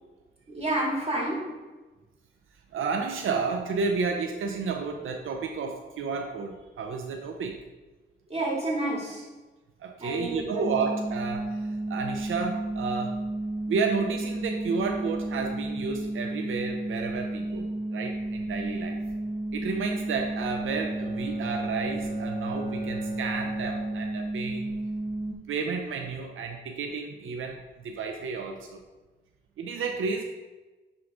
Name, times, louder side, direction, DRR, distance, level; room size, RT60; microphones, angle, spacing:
voice 1, 0.5-1.6 8.3-9.3 10.0-10.7, right 1 dB, 30° right, -3 dB, 2.4 m, -30 dB
voice 2, 2.7-7.6 9.8-13.2 13.7-19.0 19.5-24.8 25.5-28.8 29.6-30.2, right 4 dB, 90° right, 3 dB, 0.6 m, -31 dB
sound 1, 10.6-25.3, right 2 dB, 50° right, 1.4 m, -32 dB
Bowed string instrument, 20.6-24.7, equal, 35° left, 1.6 m, -43 dB
10.5 x 3.8 x 3.6 m, 1.2 s
cardioid pair, 80°, 20 cm